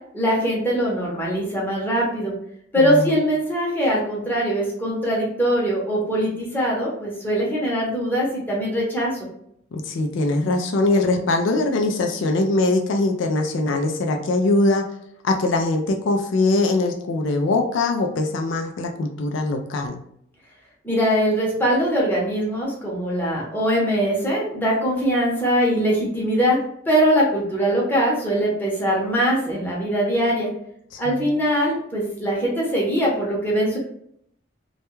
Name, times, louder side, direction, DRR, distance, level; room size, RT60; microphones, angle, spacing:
voice 1, 0.1-2.3 2.7-9.2 20.8-26.6 26.9-30.5 31.0-33.8, equal, 10° left, -5 dB, 0.7 m, -22 dB
voice 2, 2.8-3.1 9.7-14.8 15.2-20.0 30.9-31.3, left 2 dB, 75° left, 4 dB, 0.4 m, -22 dB
2.3 x 2.2 x 3.0 m, 0.70 s
head